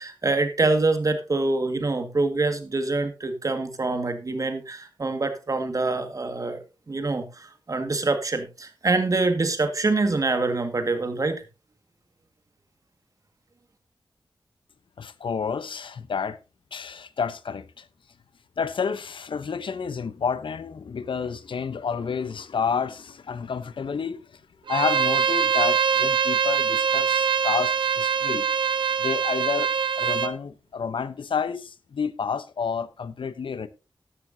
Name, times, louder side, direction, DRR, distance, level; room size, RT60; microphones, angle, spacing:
voice 1, 0.0-6.6 6.9-11.4, right 3 dB, 40° right, 1.9 m, -25 dB
voice 2, 15.0-16.4 16.7-17.9 18.6-24.4 24.7-28.5 29.0-33.7, left 6 dB, 85° left, 0.9 m, -30 dB
Bowed string instrument, 24.7-30.3, right 7 dB, 75° right, 0.8 m, -23 dB
14.0 x 11.0 x 2.8 m
wide cardioid pair, 120°, 8 cm